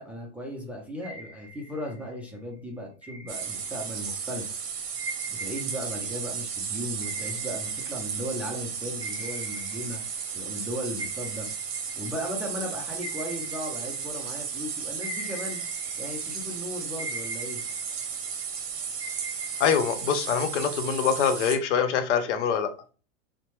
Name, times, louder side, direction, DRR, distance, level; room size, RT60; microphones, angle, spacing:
voice 1, 0.0-4.5 5.3-10.0 10.3-11.5 12.0-15.6 16.0-17.6, equal, 5° right, 0.3 m, -36 dB
sound 1, 1.0-2.3 3.0-4.2 4.9-8.6 9.0-10.7 11.0-14.5 15.0-16.6 17.0-18.6 19.0-20.7, right 1 dB, 10° left, 1.4 m, -42 dB
sound 2, 3.3-21.6, right 6 dB, 35° right, 0.7 m, -34 dB
voice 2, 19.6-22.7, left 7 dB, 70° left, 0.7 m, -24 dB
2.8 x 2.1 x 3.0 m
hypercardioid pair, 120°, 37 cm